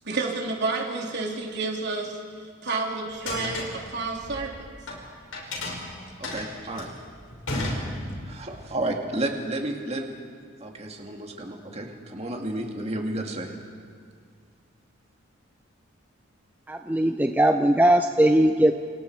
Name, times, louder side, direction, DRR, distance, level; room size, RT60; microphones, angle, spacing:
voice 1, 0.0-4.7, right 3 dB, 55° right, 0 dB, 3.5 m, -30 dB
sound 1, 3.1-5.0 5.3-8.4, left 1 dB, 75° left, 5.6 m, -33 dB
voice 2, 6.2-6.9 8.2-10.1 10.6-13.5, right 1 dB, 30° right, 2 dB, 2.2 m, -31 dB
voice 3, 16.7-18.7, right 1 dB, 10° right, 5 dB, 0.7 m, -19 dB
29.5 x 28.5 x 4.7 m, 2.1 s
head